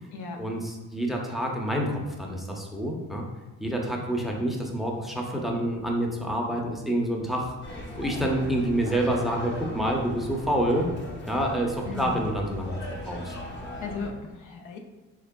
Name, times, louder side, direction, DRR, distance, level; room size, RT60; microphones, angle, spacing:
voice 1, 0.4-3.2 3.6-7.5 8.0-10.9 11.2-13.3, right 1 dB, ahead, 0 dB, 0.5 m, -28 dB
sound 1, 7.6-14.1, left 1 dB, 35° left, 0.8 m, -38 dB
voice 2, 11.9-12.3 13.8-14.8, left 4 dB, 80° left, 3 dB, 0.5 m, -36 dB
3.5 x 3.3 x 2.2 m, 1.2 s
cardioid pair, 90°, 30 cm